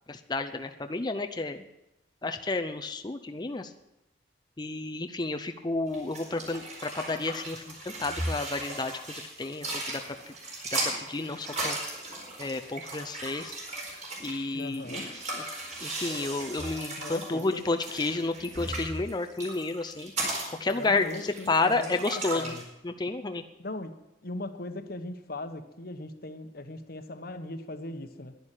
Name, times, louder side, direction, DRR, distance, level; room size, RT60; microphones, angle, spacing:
voice 1, 0.1-1.6 2.2-3.7 4.6-10.3 10.8-11.8 12.4-13.6 14.2-15.4 15.8-20.1 20.5-22.5 22.8-23.4, left 3 dB, 25° left, 6 dB, 0.6 m, -31 dB
sound 1, 5.9-22.6, right 2 dB, 40° right, 4.4 m, -37 dB
voice 2, 14.5-15.1 17.0-17.7 18.3-18.4 20.8-22.0 22.3-22.6 23.6-23.9 24.2-28.4, left 2 dB, 55° left, 9 dB, 1.1 m, -39 dB
11.0 x 10.5 x 9.0 m, 0.90 s
head